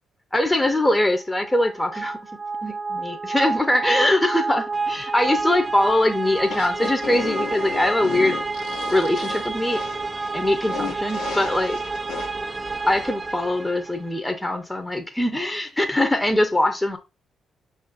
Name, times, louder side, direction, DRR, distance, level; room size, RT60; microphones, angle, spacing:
voice 1, 0.3-2.2 2.6-8.4 8.9-9.8 10.3-11.8 12.9-17.0, left 1 dB, 15° left, 0.7 m, -22 dB
sound 1, 1.4-14.2, right 3 dB, 30° right, 0.3 m, -29 dB
sound 2, 6.4-12.3, left 7 dB, 85° left, 1.0 m, -34 dB
5.2 x 2.5 x 3.9 m
hypercardioid pair, 50°, 0 cm